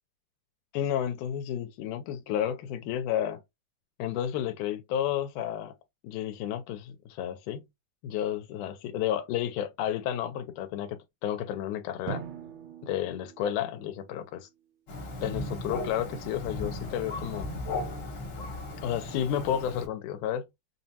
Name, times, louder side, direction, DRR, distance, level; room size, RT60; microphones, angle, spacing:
voice 1, 0.7-3.4 4.0-5.7 6.0-7.6 8.0-12.2 12.8-14.5 15.2-17.5 18.8-20.5, left 10 dB, 85° left, 2.0 m, -31 dB
Drum, 12.1-14.6, right 10 dB, 75° right, 1.6 m, -42 dB
Thunder, 14.9-19.9, left 2 dB, 55° left, 1.4 m, -36 dB
5.3 x 2.1 x 2.7 m
omnidirectional pair, 3.5 m